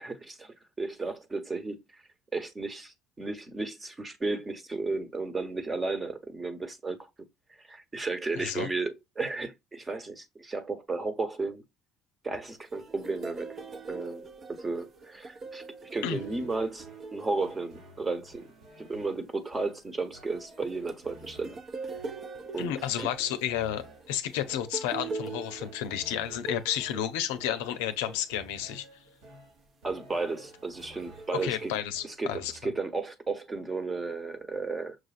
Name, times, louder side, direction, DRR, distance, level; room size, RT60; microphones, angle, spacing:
voice 1, 0.0-1.8 2.3-7.0 7.6-11.6 12.2-13.6 13.9-15.6 15.9-16.9 17.1-18.5 18.8-21.6 22.5-23.1 29.8-31.7 32.0-35.0, right 3 dB, 25° right, 1.1 m, -34 dB
voice 2, 8.3-8.7 16.0-16.2 22.6-28.9 31.4-32.5, left 10 dB, 85° left, 0.5 m, -31 dB
sound 1, 12.5-18.3 20.1-28.4 29.1-29.3 30.4-31.8, right 3 dB, 45° right, 0.9 m, -42 dB
sound 2, 16.0-32.8, right 1 dB, 80° right, 1.7 m, -54 dB
6.0 x 2.5 x 2.4 m
supercardioid pair, 75°, 0 cm